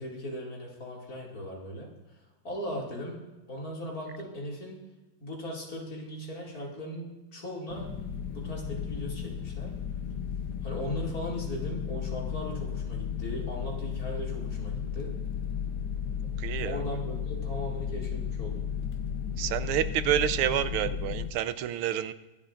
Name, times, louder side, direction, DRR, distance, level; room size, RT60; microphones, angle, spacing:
voice 1, 0.0-1.9 2.4-3.2 3.5-4.8 5.2-9.7 10.6-15.1 16.6-18.6, equal, 45° left, -3 dB, 2.8 m, -38 dB
sound 1, 7.7-21.3, left 8 dB, 65° left, 1.1 m, -34 dB
voice 2, 16.4-16.8 19.4-22.1, right 11 dB, 90° right, 13 dB, 1.5 m, -28 dB
23.0 x 8.4 x 2.5 m, 1.1 s
omnidirectional pair, 2.3 m